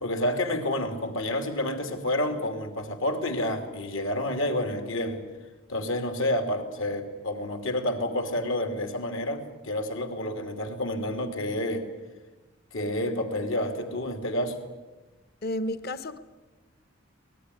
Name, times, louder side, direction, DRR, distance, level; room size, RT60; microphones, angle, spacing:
voice 1, 0.0-5.2 5.7-11.9 12.7-14.6, left 1 dB, 75° left, 2.9 m, -29 dB
voice 2, 15.4-16.2, left 1 dB, 50° left, 1.0 m, -31 dB
24.5 x 20.0 x 10.0 m
head